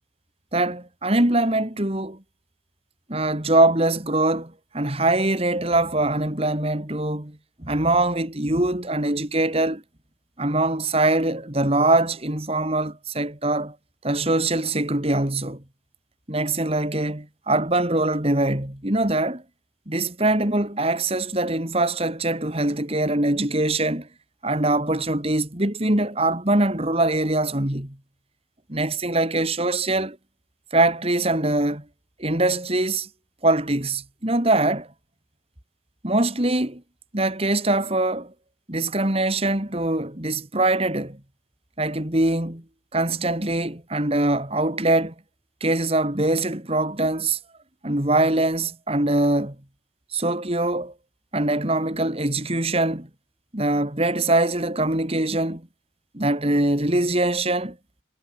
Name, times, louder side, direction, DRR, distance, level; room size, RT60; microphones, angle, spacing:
voice 1, 0.5-2.2 3.1-9.8 10.4-13.8 14.0-15.6 16.3-19.4 19.9-24.1 24.4-28.0 28.7-30.2 30.7-31.8 32.2-33.1 33.4-34.9 36.0-36.8 37.1-38.3 38.7-41.2 41.8-42.6 42.9-45.1 45.6-47.4 47.8-49.5 50.1-50.9 51.3-53.1 53.5-55.6 56.1-57.8, right 2 dB, 30° right, 2.7 m, -23 dB
head